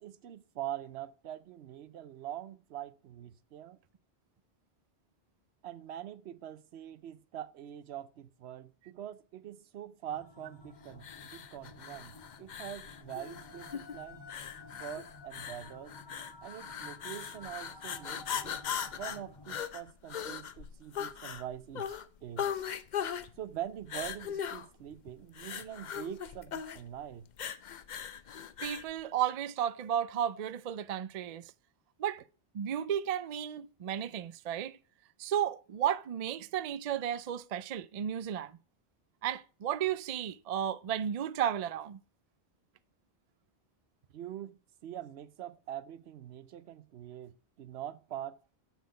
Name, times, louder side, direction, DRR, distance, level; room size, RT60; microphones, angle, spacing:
voice 1, 0.0-3.8 5.6-14.3 14.7-15.9 16.4-18.6 19.0-22.5 23.4-27.3 44.1-48.4, right 11 dB, 75° right, 0.9 m, -44 dB
sound 1, 10.1-19.6, left 3 dB, 25° left, 0.9 m, -53 dB
sound 2, 11.0-28.9, left 8 dB, 55° left, 0.6 m, -39 dB
voice 2, 28.6-31.5 32.0-32.2 32.5-34.8 35.2-38.6 39.2-42.0, right 10 dB, 55° right, 0.4 m, -33 dB
7.3 x 5.7 x 4.9 m
omnidirectional pair, 1.1 m